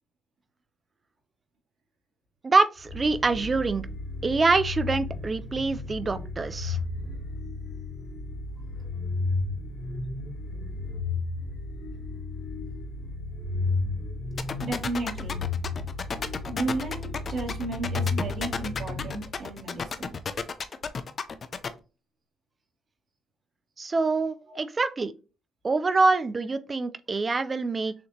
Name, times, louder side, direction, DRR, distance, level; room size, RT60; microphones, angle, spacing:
voice 1, 2.4-3.9 4.2-6.8 23.8-25.1 25.6-27.9, right 3 dB, 30° right, 0.4 m, -25 dB
sound 1, 2.8-19.7, left 3 dB, 75° left, 1.1 m, -33 dB
sound 2, 14.4-21.7, left 5 dB, 45° left, 0.5 m, -32 dB
voice 2, 14.6-15.4 16.5-20.1 24.5-24.6, right 2 dB, 55° right, 2.2 m, -33 dB
6.5 x 2.8 x 2.8 m
cardioid pair, 90°, 0 cm